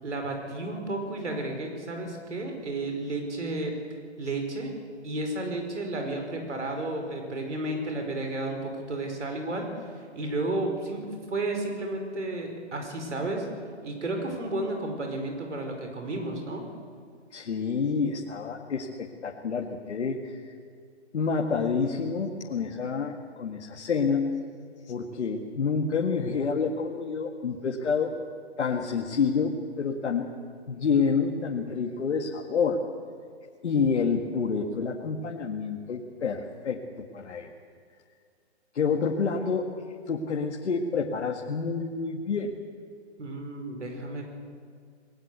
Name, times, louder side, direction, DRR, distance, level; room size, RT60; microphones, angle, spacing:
voice 1, 0.0-3.8 4.2-4.7 5.0-9.7 10.0-13.5 13.8-16.7 43.2-44.3, right 2 dB, 85° right, 3 dB, 5.2 m, -32 dB
voice 2, 17.3-20.5 21.1-24.4 24.9-28.1 28.6-30.3 30.7-32.8 33.6-37.5 38.7-39.7 40.1-42.5, left 5 dB, 75° left, 1 dB, 2.1 m, -28 dB
20.0 x 19.0 x 8.2 m, 2.2 s
hypercardioid pair, 145°, 34 cm